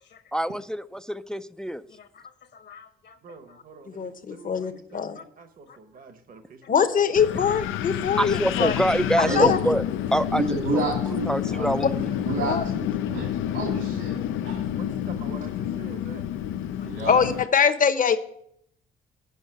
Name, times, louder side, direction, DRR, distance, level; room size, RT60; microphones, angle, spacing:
voice 1, 0.3-1.8 8.2-9.8 10.1-10.4 10.7-10.8 11.3-12.1, right 1 dB, 5° left, 0.4 m, -25 dB
voice 2, 1.9-3.6 4.6-4.7 5.1-5.2 5.7-5.8 16.8-16.9, left 6 dB, 60° left, 1.3 m, -50 dB
voice 3, 3.2-7.4 14.7-16.2, right 4 dB, 45° right, 1.0 m, -46 dB
voice 4, 3.9-5.2 6.7-8.7 9.3-9.6 12.5-12.6 17.1-18.2, left 7 dB, 45° left, 0.9 m, -22 dB
Wind, 7.2-17.4, left 10 dB, 90° left, 0.5 m, -29 dB
voice 5, 9.2-9.6 10.3-11.8 12.3-13.3 13.5-14.2 14.4-14.7 16.8-17.2, right 3 dB, 75° right, 2.3 m, -30 dB
8.1 x 5.5 x 7.7 m
cardioid pair, 90°, 20 cm